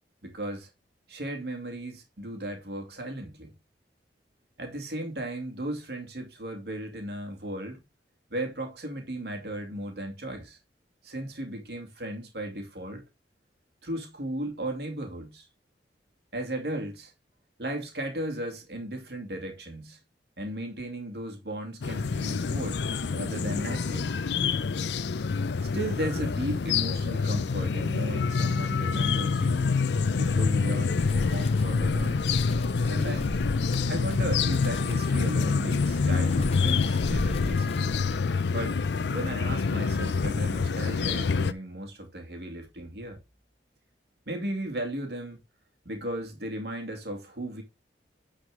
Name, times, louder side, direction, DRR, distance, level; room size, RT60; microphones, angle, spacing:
voice 1, 0.2-0.7 1.1-3.5 4.6-7.8 8.3-10.6 11.0-13.0 13.8-15.5 16.3-17.1 17.6-20.0 20.4-24.1 25.7-29.8 30.2-32.2 32.8-33.4 33.9-38.0 38.5-38.8 39.1-43.2 44.3-45.4 45.8-47.6, right 1 dB, 70° right, 2.4 m, -36 dB
sound 1, 21.8-41.5, left 4 dB, 80° left, 0.5 m, -26 dB
Wind, 30.7-38.5, left 1 dB, 35° left, 0.9 m, -37 dB
9.5 x 4.9 x 3.7 m
head